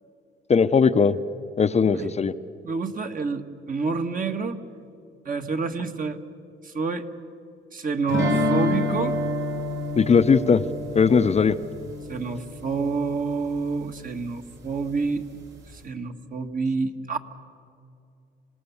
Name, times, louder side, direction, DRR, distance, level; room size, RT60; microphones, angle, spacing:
voice 1, 0.5-1.2 1.6-2.3 10.0-10.6 10.9-11.6, left 5 dB, 35° left, 10 dB, 0.7 m, -19 dB
voice 2, 2.6-4.6 5.2-6.2 6.6-7.1 7.7-9.1 12.1-15.2 15.8-17.2, right 4 dB, 45° right, 6 dB, 1.6 m, -28 dB
sound 1, 8.1-13.0, left 1 dB, 70° right, 4.7 m, -28 dB
26.5 x 18.0 x 7.2 m, 2.5 s
cardioid pair, 90°, 20 cm